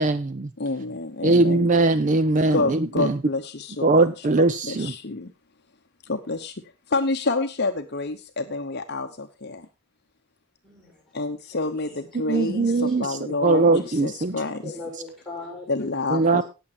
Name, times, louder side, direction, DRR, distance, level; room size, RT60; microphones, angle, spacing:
voice 1, 0.0-0.5 1.2-2.6 3.8-4.9 12.3-13.0 13.4-14.3 16.1-16.4, right 3 dB, 35° right, 13 dB, 0.5 m, -20 dB
voice 2, 0.6-1.7 2.4-5.3 6.0-6.5 6.9-9.7 11.1-14.6 15.7-16.4, left 3 dB, 45° left, 7 dB, 0.9 m, -28 dB
voice 3, 10.6-11.0 11.5-12.0 12.3-13.1 13.5-13.9 14.6-15.7 16.1-16.4, left 3 dB, ahead, 1 dB, 6.9 m, -40 dB
18.0 x 7.2 x 4.2 m, 0.29 s
head